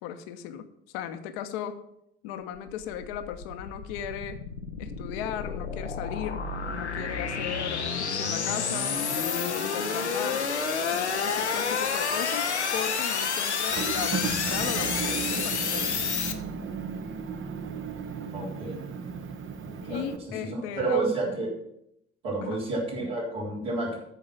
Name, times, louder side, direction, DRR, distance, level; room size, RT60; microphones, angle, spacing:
voice 1, 0.0-0.7 0.9-1.9 2.2-4.4 4.8-10.5 10.9-16.0 19.8-21.1 22.4-22.6, left 9 dB, 65° left, 8 dB, 0.9 m, -37 dB
sound 1, 2.5-16.3, left 5 dB, 90° left, 0.7 m, -29 dB
Motor vehicle (road) / Engine, 13.7-20.2, right 6 dB, 40° right, 0.9 m, -34 dB
voice 2, 18.3-18.8 19.7-20.1 20.4-21.5 22.2-24.0, right 3 dB, 70° right, -7 dB, 3.8 m, -30 dB
13.5 x 4.9 x 6.1 m, 0.77 s
figure-of-eight pair, 50°, 33 cm